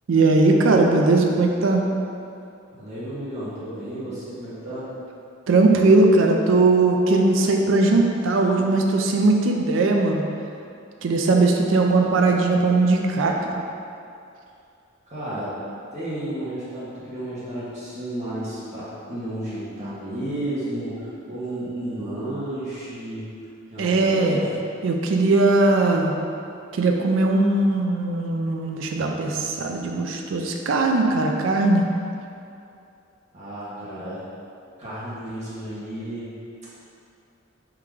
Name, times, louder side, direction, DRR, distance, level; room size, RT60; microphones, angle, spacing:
voice 1, 0.1-1.9 5.5-10.2 11.0-13.4 23.8-24.4 24.8-26.1 26.7-31.8, right 2 dB, 70° right, 2 dB, 0.4 m, -19 dB
voice 2, 2.8-4.9 15.1-15.5 15.9-23.3 23.7-24.5 33.3-34.2 34.8-36.3, right 1 dB, 35° right, -11 dB, 1.3 m, -32 dB
3.7 x 2.9 x 4.7 m, 2.6 s
head